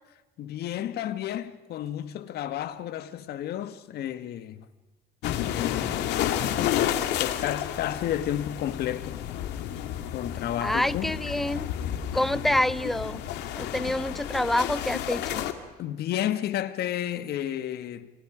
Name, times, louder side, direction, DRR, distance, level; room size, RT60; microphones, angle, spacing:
voice 1, 0.4-4.7 5.4-6.3 7.2-9.2 10.1-11.1 13.5-14.0 15.8-18.1, left 11 dB, 70° left, 1.7 m, -32 dB
sound 1, 5.2-15.5, left 11 dB, 90° left, 2.4 m, -31 dB
voice 2, 10.6-11.7 12.1-13.2 13.6-15.4, left 1 dB, ahead, 0.7 m, -27 dB
30.0 x 28.0 x 5.1 m
cardioid pair, 110°, 17 cm